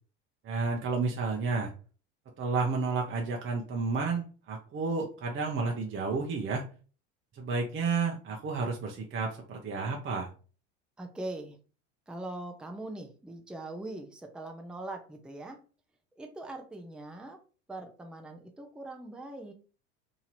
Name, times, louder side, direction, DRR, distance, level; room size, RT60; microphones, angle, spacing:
voice 1, 0.4-1.7 2.4-6.6 7.3-10.3, right 4 dB, 35° right, 1 dB, 0.8 m, -31 dB
voice 2, 11.0-11.6 12.1-15.6 16.2-17.4 17.7-19.5, right 2 dB, ahead, 3 dB, 0.6 m, -41 dB
2.9 x 2.8 x 4.0 m, 0.37 s
supercardioid pair, 105°, 34 cm